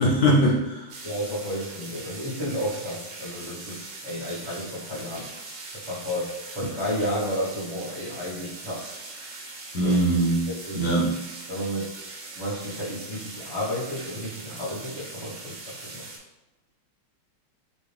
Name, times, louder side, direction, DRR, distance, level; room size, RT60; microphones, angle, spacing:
voice 1, 0.0-0.9 9.7-11.2, right 1 dB, 60° left, -4 dB, 1.1 m, -22 dB
sound 1, 0.9-16.2, right 3 dB, 65° right, 1.3 m, -41 dB
voice 2, 1.0-5.3 5.7-8.9 9.8-10.0 10.5-10.8 11.5-12.0 12.4-16.1, equal, 30° left, -9 dB, 0.4 m, -32 dB
5.8 x 2.3 x 3.3 m, 1.0 s
omnidirectional pair, 2.4 m